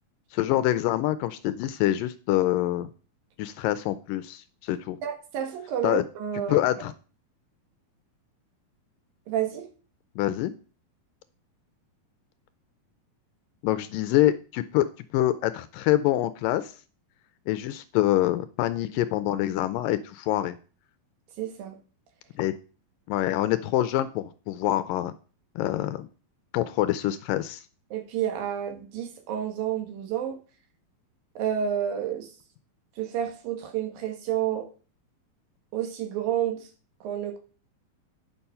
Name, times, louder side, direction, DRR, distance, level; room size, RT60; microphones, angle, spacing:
voice 1, 0.3-2.9 3.4-5.0 5.8-6.0 6.5-6.9 10.2-10.5 13.6-16.7 17.5-20.6 22.4-22.5 23.1-25.1 25.6-26.1 26.5-27.6, left 14 dB, 80° left, 13 dB, 2.1 m, -25 dB
voice 2, 5.0-6.6 9.3-9.7 21.4-21.8 27.9-30.4 31.4-32.3 33.0-34.7 35.7-36.6 37.0-37.4, right 9 dB, 75° right, 6 dB, 3.1 m, -30 dB
9.1 x 5.8 x 5.5 m, 0.36 s
omnidirectional pair, 4.2 m